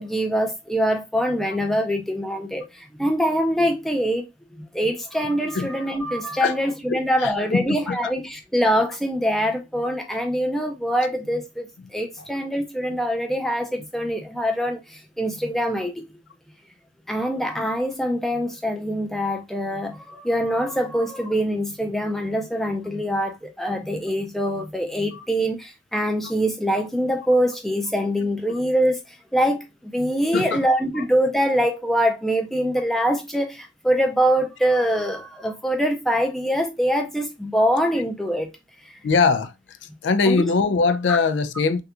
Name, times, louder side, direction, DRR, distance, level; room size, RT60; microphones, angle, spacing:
voice 1, 0.0-16.0 17.1-38.5 38.8-39.0 40.3-40.5 41.1-41.2, equal, ahead, 0.5 m, -24 dB
voice 2, 6.9-8.0 25.1-25.2 30.3-30.7 30.9-31.0 39.0-39.5 40.0-41.8, left 4 dB, 70° left, 0.4 m, -22 dB
3.5 x 2.3 x 2.8 m
head